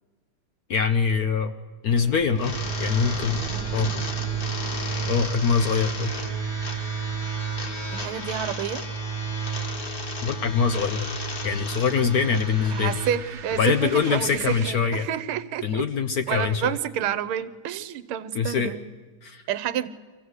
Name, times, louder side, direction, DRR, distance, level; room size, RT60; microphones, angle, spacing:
voice 1, 0.7-1.5 1.8-2.5 2.8-3.4 3.7-3.9 5.1-6.1 10.2-11.1 11.4-12.9 13.6-15.1 15.6-16.7 18.3-18.7 19.2-19.4, left 6 dB, 65° left, 10 dB, 0.9 m, -23 dB
sound 1, 1.9-14.7, right 5 dB, 55° right, 1.5 m, -42 dB
sound 2, 2.4-13.1, right 3 dB, 45° left, 2.4 m, -31 dB
voice 2, 7.9-8.8 12.7-15.9 16.3-18.9 19.5-19.9, right 10 dB, 75° right, 16 dB, 1.7 m, -29 dB
25.0 x 15.5 x 8.0 m, 1.4 s
omnidirectional pair, 2.4 m